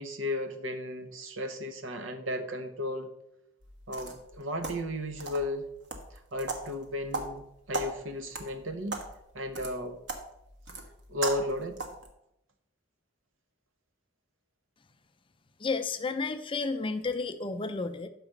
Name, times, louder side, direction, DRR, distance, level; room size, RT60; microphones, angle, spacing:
voice 1, 0.0-3.1 3.9-5.7 6.1-9.0 9.3-10.0 11.1-11.8, left 1 dB, 85° right, 8 dB, 0.9 m, -34 dB
sound 1, 3.6-12.1, right 3 dB, 60° right, 1.2 m, -39 dB
voice 2, 15.6-18.1, left 4 dB, 25° left, 9 dB, 0.5 m, -32 dB
6.1 x 4.9 x 6.5 m, 0.79 s
head